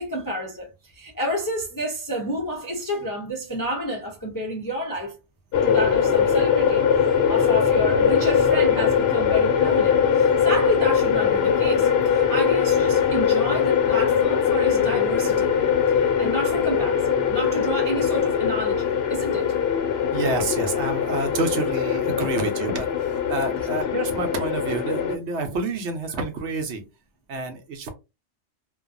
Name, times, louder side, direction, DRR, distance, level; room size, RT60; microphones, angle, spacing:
voice 1, 0.0-5.2 5.6-15.5 16.0-19.5, equal, 30° left, 0.3 m, -30 dB
sound 1, 5.5-25.2, left 7 dB, 65° left, 0.7 m, -21 dB
voice 2, 20.1-26.8 27.3-27.9, right 3 dB, 70° right, 0.9 m, -28 dB
2.5 x 2.2 x 2.4 m
omnidirectional pair, 1.3 m